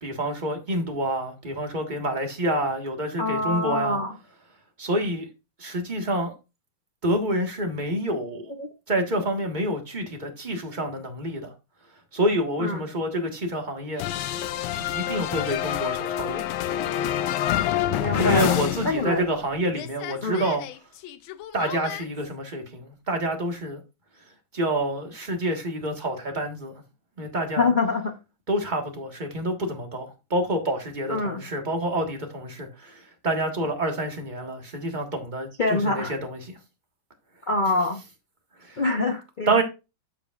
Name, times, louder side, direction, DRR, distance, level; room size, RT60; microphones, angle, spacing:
voice 1, 0.0-4.0 4.8-5.3 5.6-6.3 7.0-8.5 8.9-11.5 12.1-14.3 14.8-16.5 18.1-20.6 21.5-23.8 24.5-26.8 27.2-27.7 28.5-36.5 38.6-38.8 39.5-39.6, right 1 dB, 25° right, 1.6 m, -28 dB
voice 2, 3.2-4.1 8.6-8.7 12.6-12.8 18.0-19.2 20.2-20.4 27.6-28.1 31.1-31.4 35.6-36.1 37.5-38.0 38.8-39.5, left 3 dB, 55° left, 0.5 m, -25 dB
sound 1, 14.0-19.5 19.7-22.0, left 12 dB, 85° left, 1.4 m, -28 dB
13.5 x 5.0 x 2.5 m
omnidirectional pair, 2.1 m